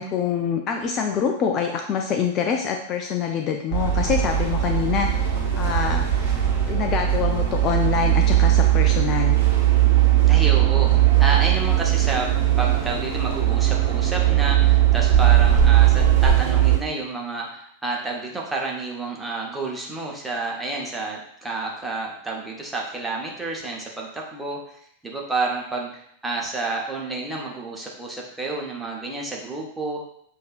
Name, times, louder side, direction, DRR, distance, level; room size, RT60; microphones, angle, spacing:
voice 1, 0.0-6.4 6.7-9.4, left 7 dB, 35° left, 3 dB, 0.4 m, -25 dB
sound 1, 3.7-16.8, right 12 dB, 60° right, 1.0 m, -19 dB
voice 2, 10.3-12.3 12.6-24.8 25.0-30.0, right 3 dB, 10° right, -2 dB, 1.0 m, -30 dB
6.4 x 2.7 x 2.5 m, 0.70 s
figure-of-eight pair, 90°, 0 cm